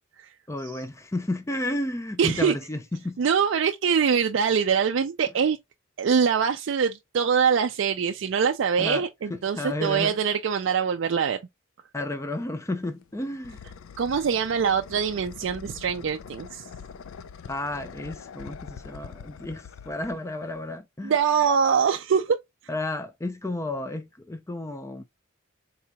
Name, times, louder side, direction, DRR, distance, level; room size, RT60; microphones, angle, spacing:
voice 1, 0.5-3.2 8.8-10.1 11.9-13.6 17.5-21.1 22.7-25.0, left 1 dB, 15° left, 0.4 m, -32 dB
voice 2, 2.2-2.6 3.2-5.6 6.0-11.4 14.0-16.7 21.0-22.4, right 6 dB, 65° right, 0.4 m, -23 dB
sound 1, 12.8-20.8, left 6 dB, 85° left, 0.4 m, -44 dB
4.1 x 2.8 x 2.2 m
head